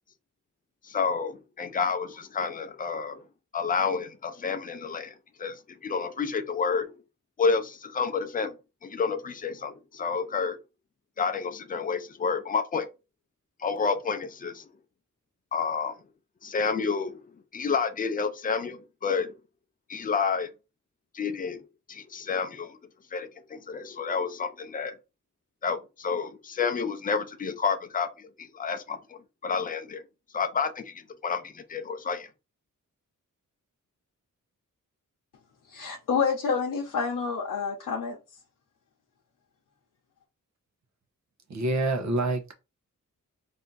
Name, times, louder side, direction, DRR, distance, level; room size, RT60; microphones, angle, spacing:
voice 1, 0.8-3.2 3.5-6.9 7.4-8.5 8.8-10.6 11.2-12.9 13.6-14.7 15.5-15.9 16.4-17.2 17.5-19.3 19.9-20.5 21.1-21.6 21.9-22.8 23.1-24.9 25.6-30.0 30.3-32.3, left 5 dB, 25° left, 0.5 m, -30 dB
voice 2, 35.7-38.2, left 5 dB, 70° left, 0.8 m, -28 dB
voice 3, 41.5-42.5, right 2 dB, 60° right, 1.0 m, -27 dB
3.3 x 2.8 x 3.9 m
wide cardioid pair, 150°, 33 cm